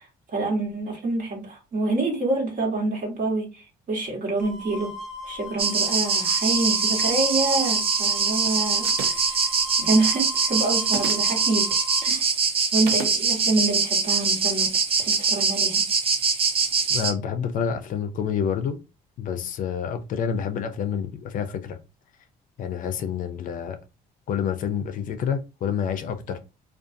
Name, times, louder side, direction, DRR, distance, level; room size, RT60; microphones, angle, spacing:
voice 1, 0.0-4.9 5.2-11.7 12.0-12.3 12.7-14.7 15.0-15.8, right 2 dB, 50° right, 1.2 m, -27 dB
sound 1, 4.4-12.1, left 1 dB, 5° right, 0.7 m, -38 dB
sound 2, 5.6-17.1, right 5 dB, 35° right, 0.5 m, -23 dB
sound 3, 8.8-9.3 10.9-11.3 12.9-13.2, right 7 dB, 85° right, 0.5 m, -33 dB
voice 2, 16.9-18.8 19.2-21.8 22.6-23.8 24.3-26.4, left 7 dB, 55° left, 0.4 m, -28 dB
2.5 x 2.3 x 2.5 m
cardioid pair, 110°, 17 cm